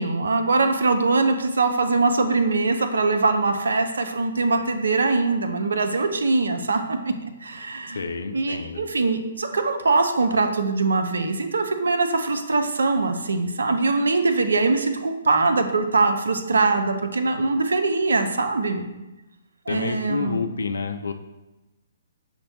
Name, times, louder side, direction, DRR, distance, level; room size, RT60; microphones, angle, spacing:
voice 1, 0.0-7.1 7.4-8.1 8.3-18.9 19.7-20.4, right 3 dB, 75° right, 6 dB, 0.5 m, -22 dB
voice 2, 7.9-8.8 19.7-21.1, left 4 dB, 75° left, 8 dB, 0.4 m, -29 dB
5.8 x 2.2 x 4.0 m, 1.0 s
figure-of-eight pair, 130°, 0 cm